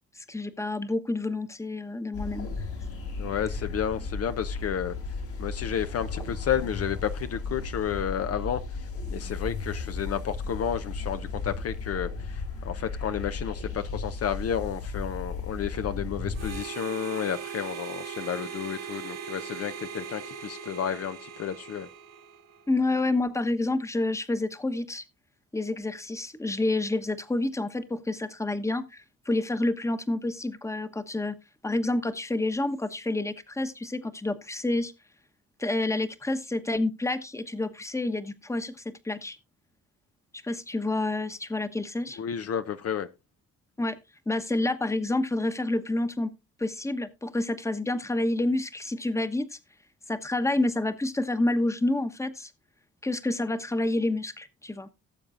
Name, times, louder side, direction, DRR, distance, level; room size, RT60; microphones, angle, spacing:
voice 1, 0.2-2.5 22.7-25.0 25.5-31.4 31.6-34.9 35.6-39.4 40.4-42.2 43.8-44.0 44.3-46.3 46.6-49.6 50.1-52.5 53.0-54.9, left 2 dB, 10° left, 1.1 m, -28 dB
sound 1, 2.1-16.6, left 4 dB, 85° left, 4.8 m, -35 dB
voice 2, 3.2-5.0 5.4-21.9 42.2-43.1, left 8 dB, 50° left, 0.7 m, -31 dB
Harmonica, 16.3-22.7, right 7 dB, 55° right, 1.5 m, -40 dB
18.0 x 7.1 x 2.5 m
cardioid pair, 90°, 30 cm